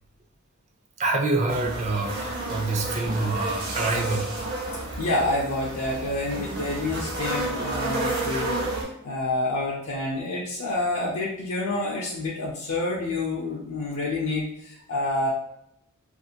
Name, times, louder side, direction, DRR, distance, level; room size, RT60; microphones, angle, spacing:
voice 1, 1.0-4.4, right 2 dB, 30° right, 1 dB, 0.4 m, -26 dB
sound 1, 1.5-8.8, right 2 dB, 60° right, 0.9 m, -31 dB
voice 2, 5.0-15.3, left 2 dB, 70° left, -4 dB, 0.5 m, -28 dB
2.5 x 2.4 x 2.7 m, 0.76 s
head